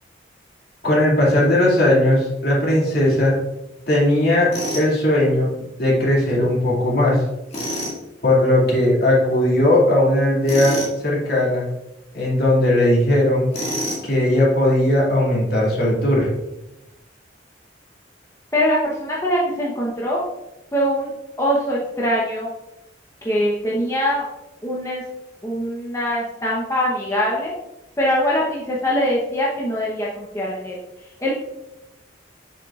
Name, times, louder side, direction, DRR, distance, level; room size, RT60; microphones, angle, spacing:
voice 1, 0.8-3.4 3.9-5.5 5.8-7.2 8.2-11.7 12.1-13.5 14.0-16.3, left 1 dB, 55° left, -4 dB, 2.4 m, -18 dB
Tools, 4.5-4.9 7.5-8.0 10.5-11.0 13.5-14.1, equal, 35° left, 1.9 m, -27 dB
voice 2, 18.5-20.2 20.7-21.1 21.4-22.5 23.2-24.2 24.6-25.0 25.4-27.5 28.0-30.8 31.2-31.3, equal, 15° left, -5 dB, 0.9 m, -22 dB
7.3 x 6.6 x 2.4 m, 0.90 s
head